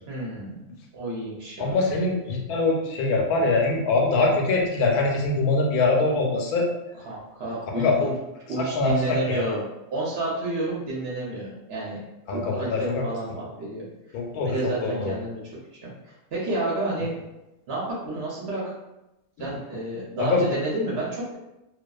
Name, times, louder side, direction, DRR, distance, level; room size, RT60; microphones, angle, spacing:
voice 1, 0.1-0.7 0.9-1.7 6.9-8.2 8.5-9.6 9.9-12.0 12.3-13.9 14.4-15.4 15.8-17.2 17.7-18.7 19.4-21.4, right 2 dB, 60° right, -5 dB, 0.7 m, -30 dB
voice 2, 1.6-6.7 7.8-7.9 8.7-9.5 12.3-12.8 14.1-14.5 14.8-15.1 20.3-20.4, left 3 dB, 90° left, 0 dB, 1.1 m, -23 dB
2.5 x 2.3 x 2.2 m, 0.94 s
omnidirectional pair, 1.5 m